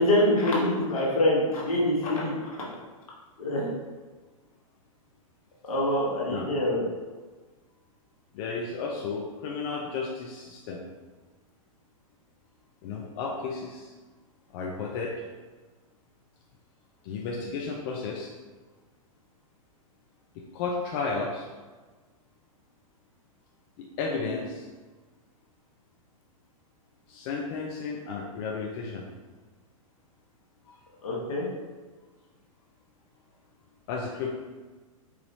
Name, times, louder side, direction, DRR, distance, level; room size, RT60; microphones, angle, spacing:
voice 1, 0.0-2.3 3.4-3.7 5.7-6.9 31.0-31.5, left 1 dB, 75° left, -4 dB, 1.4 m, -25 dB
voice 2, 8.3-10.8 12.8-13.9 14.5-15.1 17.0-18.3 20.3-21.5 23.8-24.6 27.1-29.0 30.7-30.8 33.9-34.3, left 4 dB, 45° left, -2 dB, 0.5 m, -33 dB
4.7 x 2.5 x 3.1 m, 1.3 s
hypercardioid pair, 110°, 18 cm